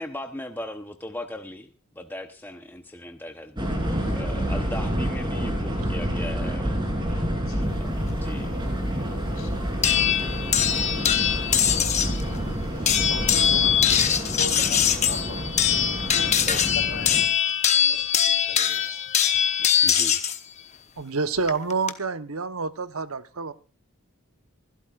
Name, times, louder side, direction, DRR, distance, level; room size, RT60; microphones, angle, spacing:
voice 1, 0.0-3.8 4.1-6.9 7.8-8.5 13.9-14.0 16.5-16.6 19.8-20.2, left 1 dB, 10° left, 6 dB, 0.8 m, -38 dB
sound 1, 3.6-17.2, equal, 20° right, 3.3 m, -28 dB
voice 2, 7.3-7.7 9.3-9.5 9.9-19.0, left 2 dB, 70° left, 6 dB, 4.0 m, -41 dB
sound 2, 9.8-12.2 12.9-20.4 21.5-21.9, left 9 dB, 30° left, 1.0 m, -22 dB
voice 3, 21.0-23.5, right 4 dB, 75° right, 11 dB, 1.0 m, -28 dB
27.0 x 12.5 x 2.4 m, 0.32 s
head